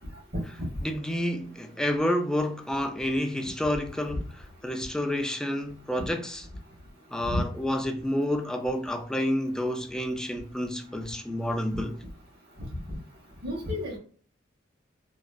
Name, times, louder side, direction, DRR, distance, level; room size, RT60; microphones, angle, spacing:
voice 1, 0.8-6.5 7.1-11.9, left 1 dB, 5° left, 0.3 m, -29 dB
voice 2, 13.4-14.0, left 1 dB, 55° right, 1.4 m, -31 dB
3.0 x 2.4 x 2.4 m
head